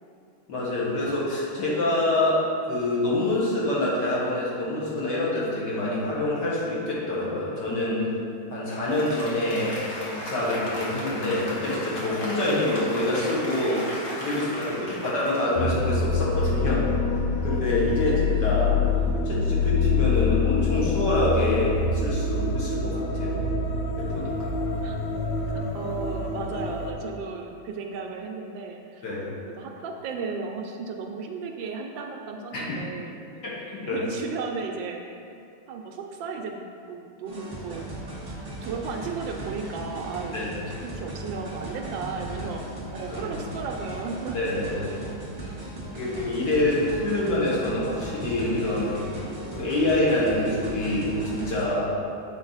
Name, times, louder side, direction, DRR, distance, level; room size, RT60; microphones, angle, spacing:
voice 1, 0.5-8.1 8.5-16.9 17.4-18.7 19.3-23.4 24.0-24.6 29.0-29.2 32.5-32.6 33.4-34.0 40.3-40.5 43.1-43.3 44.3-44.9 45.9-49.0 49.5-51.9, left 1 dB, 60° left, -6 dB, 1.9 m, -26 dB
Applause, 8.7-16.3, left 1 dB, 45° left, 1.4 m, -36 dB
sound 1, 15.6-26.9, left 4 dB, 75° left, 1.4 m, -25 dB
voice 2, 18.0-18.5 24.8-25.0 25.5-29.0 29.6-33.4 33.8-35.2 35.7-36.6 36.9-37.9 38.3-38.4 38.6-42.6 42.9-44.4 45.6-46.4, right 4 dB, 75° right, 2 dB, 1.2 m, -35 dB
sound 2, 37.2-51.6, right 1 dB, 25° right, 0.4 m, -37 dB
6.9 x 4.6 x 3.9 m, 2.6 s
omnidirectional pair, 2.2 m